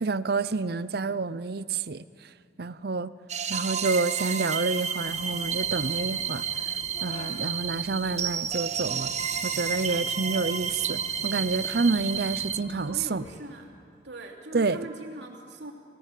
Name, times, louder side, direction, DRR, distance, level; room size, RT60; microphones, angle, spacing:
voice 1, 0.0-2.0 2.6-3.1 3.5-6.4 7.0-9.1 9.4-13.3 14.5-14.8, right 4 dB, 60° right, 0.6 m, -28 dB
sound 1, 3.3-12.6, right 7 dB, 40° right, 1.0 m, -31 dB
sound 2, 4.9-13.4, left 1 dB, 40° left, 1.9 m, -47 dB
voice 2, 12.8-13.7 14.0-15.7, right 1 dB, 75° right, 3.0 m, -41 dB
29.0 x 17.5 x 7.6 m
head